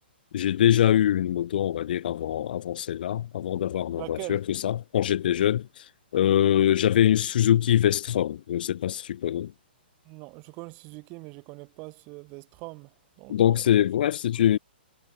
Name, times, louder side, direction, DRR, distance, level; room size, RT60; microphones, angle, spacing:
voice 1, 0.3-5.8 6.1-9.5 13.3-14.6, left 11 dB, 55° left, 1.5 m, -23 dB
voice 2, 4.0-4.6 10.0-13.7, right 28 dB, 30° right, 3.0 m, -42 dB
hypercardioid pair, 150°, 6 cm